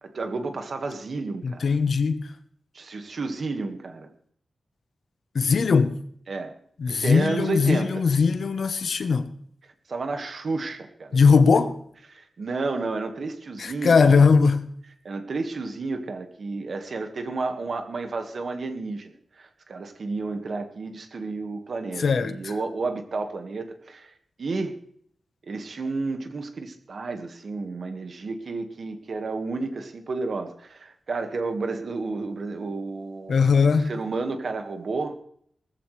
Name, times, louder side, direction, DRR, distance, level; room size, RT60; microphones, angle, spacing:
voice 1, 0.0-1.7 2.7-4.1 6.3-6.5 6.9-8.0 9.9-11.2 12.1-14.3 15.0-24.1 24.4-24.8 25.5-33.5 33.8-35.2, right 3 dB, 55° right, 1.8 m, -31 dB
voice 2, 1.4-2.3 5.3-6.0 6.8-9.3 11.1-11.8 13.6-14.7 22.0-22.4 33.3-33.9, left 5 dB, 65° left, 1.0 m, -20 dB
19.5 x 14.5 x 3.3 m
wide cardioid pair, 150°, 0 cm